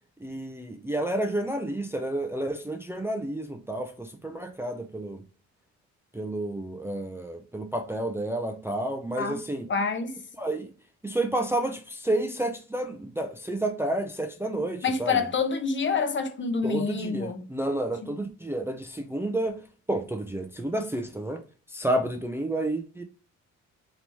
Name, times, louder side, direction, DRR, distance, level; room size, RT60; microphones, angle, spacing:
voice 1, 0.2-5.2 6.1-9.7 10.4-10.7 11.0-15.3 16.6-19.6 19.9-21.4 21.7-23.0, right 1 dB, 10° right, 0.5 m, -30 dB
voice 2, 9.7-10.1 14.8-17.5, left 5 dB, 40° left, 0.8 m, -27 dB
3.1 x 3.0 x 4.1 m
cardioid pair, 90°, 30 cm